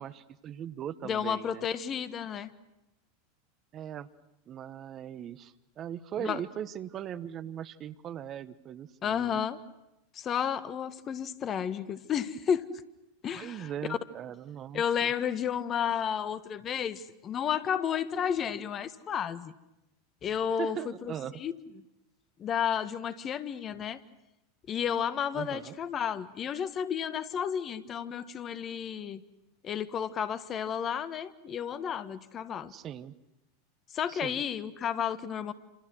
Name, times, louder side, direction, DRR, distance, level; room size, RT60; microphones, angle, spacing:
voice 1, 0.0-1.6 3.7-4.1 4.5-9.4 13.3-15.1 20.6-21.4 25.3-25.8 32.7-33.1 34.1-34.4, right 10 dB, 35° right, 16 dB, 1.2 m, -39 dB
voice 2, 1.0-2.5 6.2-6.4 9.0-9.6 10.1-12.7 13.2-14.0 14.7-19.5 20.2-21.5 22.4-24.0 24.7-29.2 29.6-32.7 33.9-35.5, left 8 dB, 35° left, 14 dB, 1.5 m, -32 dB
28.5 x 27.5 x 6.3 m, 0.91 s
hypercardioid pair, 90°, 0 cm